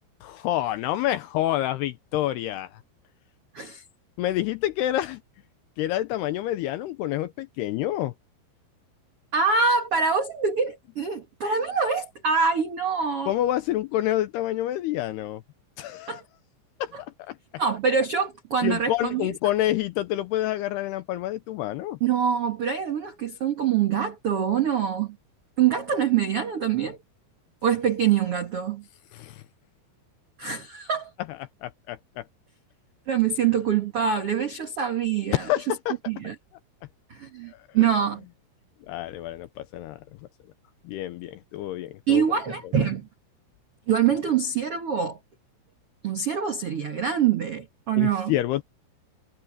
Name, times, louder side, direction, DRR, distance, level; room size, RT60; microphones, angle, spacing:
voice 1, 0.2-2.8 4.2-5.2 5.8-8.1 13.3-15.4 15.8-16.2 16.8-16.9 17.2-17.4 18.6-22.0 29.1-29.4 31.3-32.2 35.3-36.0 37.5-37.9 38.9-40.0 40.8-42.4 48.0-48.6, left 14 dB, 85° left, 2.4 m, -28 dB
voice 2, 9.3-13.3 16.1-16.2 17.6-19.3 22.0-25.1 25.6-27.0 27.6-28.8 30.4-31.1 33.1-35.4 36.1-36.3 37.1-38.2 42.1-43.1 43.9-45.2 46.0-48.3, right 7 dB, 80° right, 1.3 m, -24 dB
omnidirectional pair, 5.5 m